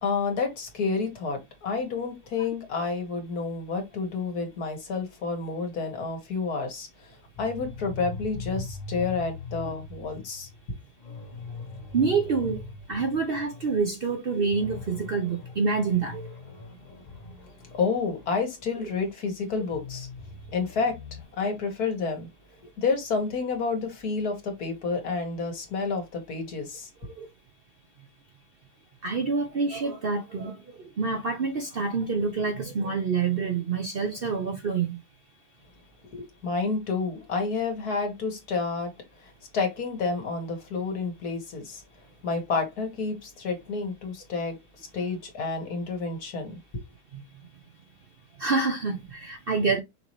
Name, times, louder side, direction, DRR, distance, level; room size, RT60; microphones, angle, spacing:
voice 1, 0.0-6.9 7.4-10.5 17.7-20.1 20.5-22.3 22.8-26.9 36.1-38.9 39.5-41.8 42.2-44.6 44.9-46.6, left 4 dB, 70° left, 2.0 m, -29 dB
sound 1, 7.3-13.8 14.1-14.2 14.5-19.1 19.6-21.2, left 4 dB, 25° left, 1.4 m, -41 dB
voice 2, 11.9-12.6 12.9-16.3 18.8-18.9 27.2-27.3 29.0-35.0 47.1-47.2 48.4-49.8, right 4 dB, 50° right, 0.7 m, -27 dB
5.7 x 2.8 x 3.1 m
omnidirectional pair, 1.7 m